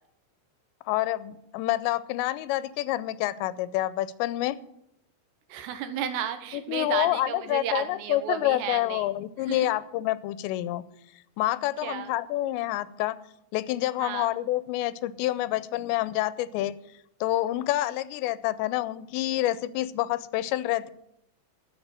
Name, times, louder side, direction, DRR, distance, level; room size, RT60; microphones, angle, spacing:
voice 1, 0.9-4.6 6.5-10.9 11.4-13.2 13.5-16.7 17.2-20.9, left 15 dB, 85° left, 16 dB, 2.8 m, -28 dB
voice 2, 5.5-9.1 9.5-9.7 11.8-12.1 14.0-14.3, right 9 dB, 75° right, 9 dB, 3.0 m, -33 dB
12.0 x 7.5 x 7.3 m, 0.78 s
omnidirectional pair, 5.0 m